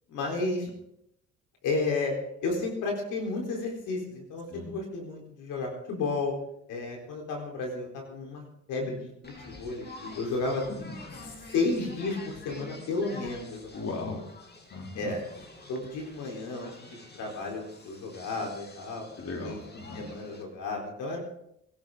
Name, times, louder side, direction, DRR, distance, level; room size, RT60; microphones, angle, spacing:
voice 1, 0.1-0.7 1.6-6.3 6.7-8.4 8.7-10.7 11.5-13.8 14.9-15.2 15.7-19.0 19.4-19.6 19.9-21.2, left 3 dB, 90° left, 1 dB, 4.1 m, -32 dB
sound 1, 9.2-20.4, left 2 dB, 35° left, 3.1 m, -48 dB
voice 2, 10.7-11.2 13.7-14.2 14.7-15.1 19.2-20.1, left 3 dB, 55° left, 1 dB, 3.3 m, -37 dB
22.5 x 12.5 x 3.9 m, 0.76 s
cardioid pair, 90°, 30 cm